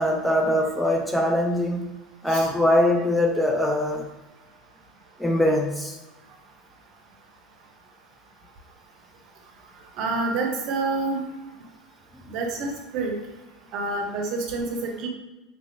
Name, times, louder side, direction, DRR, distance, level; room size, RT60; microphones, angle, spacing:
voice 1, 0.0-1.9 2.2-4.0 5.2-6.0, left 1 dB, 5° left, 1 dB, 0.5 m, -22 dB
voice 2, 10.0-11.2 12.3-13.2 13.7-15.1, right 3 dB, 60° right, 1 dB, 0.8 m, -28 dB
3.6 x 2.8 x 2.7 m, 1.1 s
hypercardioid pair, 95°, 0 cm